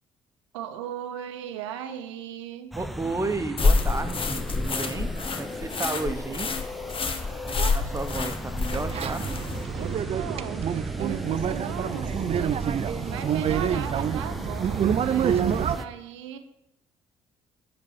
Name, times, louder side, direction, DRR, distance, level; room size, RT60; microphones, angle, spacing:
voice 1, 0.5-2.7 7.6-7.8 8.1-8.2 9.7-16.4, right 9 dB, 85° right, 9 dB, 0.7 m, -37 dB
sound 1, 2.7-15.9, equal, ahead, 0.6 m, -37 dB
voice 2, 2.7-6.5 7.4-9.2, right 3 dB, 20° right, 8 dB, 1.1 m, -32 dB
sound 2, 3.6-9.6, left 4 dB, 35° left, 1.0 m, -28 dB
sound 3, 8.7-15.8, right 9 dB, 40° right, 0.5 m, -27 dB
8.4 x 4.0 x 7.1 m, 0.86 s
hypercardioid pair, 55°, 15 cm